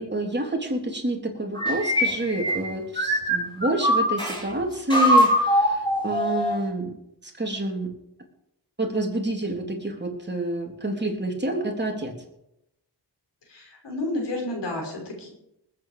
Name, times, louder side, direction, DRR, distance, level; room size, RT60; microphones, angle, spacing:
voice 1, 0.0-6.9 7.2-7.9 8.8-12.1, right 2 dB, 25° right, 1 dB, 3.5 m, -28 dB
sound 1, 1.5-4.4 4.9-6.7, equal, 10° left, 5.2 m, -22 dB
voice 2, 13.5-15.3, left 2 dB, 80° left, 1 dB, 5.8 m, -31 dB
20.0 x 9.4 x 5.1 m, 0.83 s
cardioid pair, 60°, 41 cm